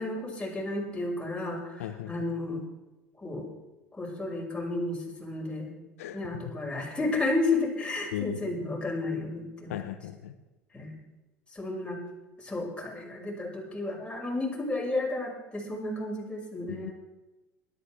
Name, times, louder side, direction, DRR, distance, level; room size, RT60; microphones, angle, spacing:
voice 1, 0.0-2.6 3.2-3.5 3.9-5.7 6.1-9.7 10.7-11.0 11.5-12.0 12.4-16.9, left 2 dB, 15° left, -2 dB, 5.9 m, -32 dB
voice 2, 1.8-2.1 6.0-6.5 8.1-8.4 9.7-10.3 16.7-16.9, left 12 dB, 75° left, 9 dB, 0.9 m, -36 dB
23.0 x 12.5 x 3.4 m, 1.1 s
hypercardioid pair, 70°, 8 cm